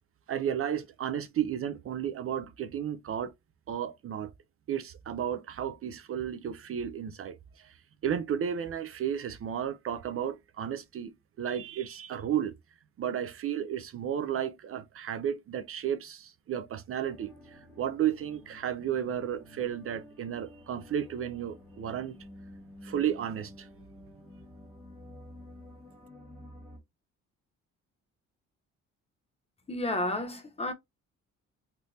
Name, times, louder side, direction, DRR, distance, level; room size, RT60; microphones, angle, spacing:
voice 1, 0.3-3.3 3.7-4.3 4.7-7.8 8.0-11.1 11.4-12.5 13.0-22.2 22.8-23.7, right 9 dB, 50° right, 0.4 m, -33 dB
sound 1, 17.0-26.8, left 1 dB, 5° left, 1.3 m, -51 dB
voice 2, 29.7-30.7, left 1 dB, 20° left, 0.7 m, -31 dB
3.4 x 2.6 x 2.6 m
cardioid pair, 90°, 30 cm